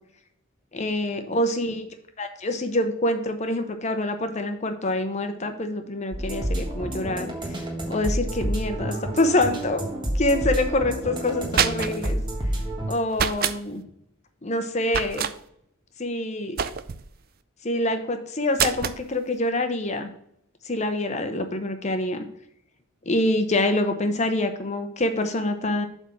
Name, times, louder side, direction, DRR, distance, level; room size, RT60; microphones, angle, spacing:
voice 1, 0.7-1.9 2.2-7.6 7.9-9.8 10.1-12.2 12.9-13.8 14.4-15.3 16.0-16.6 17.6-20.1 20.7-22.2 23.1-25.9, left 1 dB, 30° left, 7 dB, 0.7 m, -26 dB
sound 1, 6.1-12.9, right 1 dB, 20° right, 1.5 m, -29 dB
sound 2, 11.3-12.1 13.1-13.6 14.9-15.3 16.6-17.1 18.5-19.0, right 8 dB, 45° right, 0.4 m, -26 dB
7.9 x 3.6 x 5.9 m, 0.75 s
head